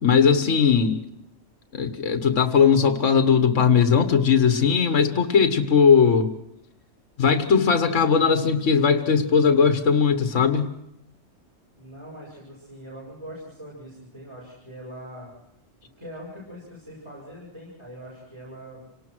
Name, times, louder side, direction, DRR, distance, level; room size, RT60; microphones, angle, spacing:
voice 1, 0.0-1.0 1.7-6.3 7.2-10.7, left 6 dB, 80° left, 8 dB, 1.7 m, -19 dB
voice 2, 11.8-15.3 15.8-18.8, equal, 20° right, -6 dB, 7.1 m, -42 dB
27.0 x 19.0 x 6.2 m, 0.83 s
omnidirectional pair, 1.3 m